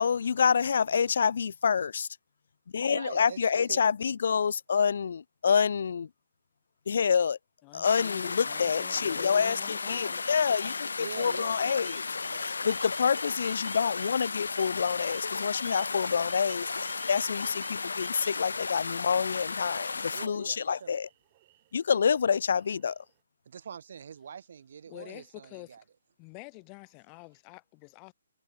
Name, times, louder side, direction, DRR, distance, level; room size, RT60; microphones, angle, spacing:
voice 1, 0.0-2.1 2.7-6.1 6.9-7.4 7.7-12.0 12.3-21.1 21.7-23.0, left 6 dB, 60° left, 1.1 m, -27 dB
voice 2, 2.9-3.4 3.7-3.8 11.0-11.9 12.3-12.8 20.1-20.9 23.5-25.8, right 7 dB, 55° right, 2.2 m, -44 dB
voice 3, 7.6-10.3 24.9-25.8 26.2-28.1, left 37 dB, 25° left, 1.5 m, -48 dB
sound 1, 7.8-20.3, left 4 dB, 85° left, 2.6 m, -34 dB
sound 2, 10.6-19.1 19.4-23.1, right 19 dB, 30° right, 6.3 m, -56 dB
hypercardioid pair, 155°, 0 cm